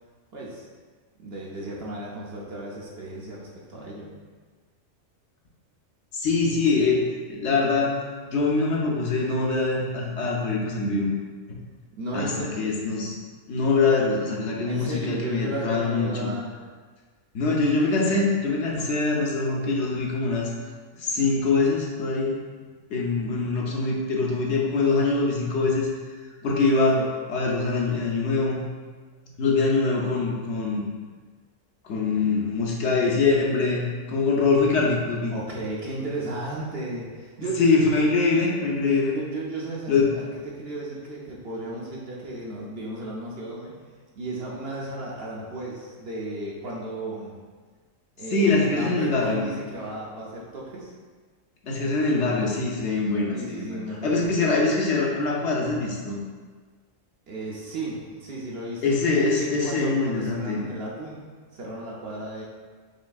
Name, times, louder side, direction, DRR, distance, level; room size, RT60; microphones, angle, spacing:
voice 1, 0.3-0.7 1.2-4.1 11.9-12.5 14.7-16.5 26.9-27.1 32.0-32.5 35.3-37.9 39.1-43.7 44.2-47.4 48.2-50.9 53.3-54.5 57.3-59.0 59.4-61.2 61.5-62.4, right 2 dB, 60° right, -4 dB, 0.8 m, -34 dB
voice 2, 6.1-7.0 7.3-8.0 8.3-11.1 12.1-13.2 13.5-16.3 17.3-20.5 21.0-22.4 22.9-25.9 26.4-27.0 27.3-28.6 29.4-30.8 31.8-35.3 37.6-39.2 39.9-40.1 48.3-49.4 51.6-56.2 58.8-60.6, left 3 dB, 65° left, -3 dB, 0.9 m, -23 dB
5.1 x 3.2 x 2.3 m, 1.5 s
omnidirectional pair, 1.4 m